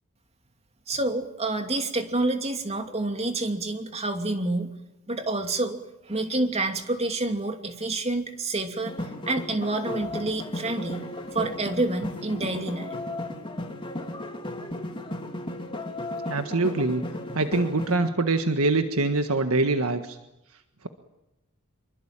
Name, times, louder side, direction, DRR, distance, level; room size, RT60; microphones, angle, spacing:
voice 1, 0.9-4.7 5.1-11.0 11.3-13.0, right 2 dB, 30° right, 6 dB, 2.7 m, -28 dB
sound 1, 8.8-18.1, left 1 dB, 25° left, 3.3 m, -35 dB
voice 2, 16.3-17.0 17.3-20.2, right 3 dB, 75° right, 7 dB, 1.6 m, -24 dB
26.0 x 23.5 x 8.9 m, 0.91 s
head